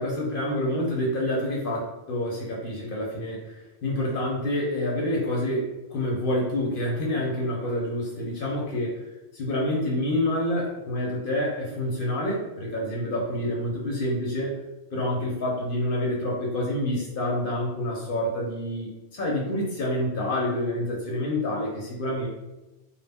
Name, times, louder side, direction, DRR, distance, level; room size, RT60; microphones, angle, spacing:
voice 1, 0.0-9.0 9.3-14.5 14.9-22.3, left 1 dB, 60° left, -3 dB, 0.7 m, -28 dB
2.0 x 2.0 x 3.4 m, 1.0 s
omnidirectional pair, 1.1 m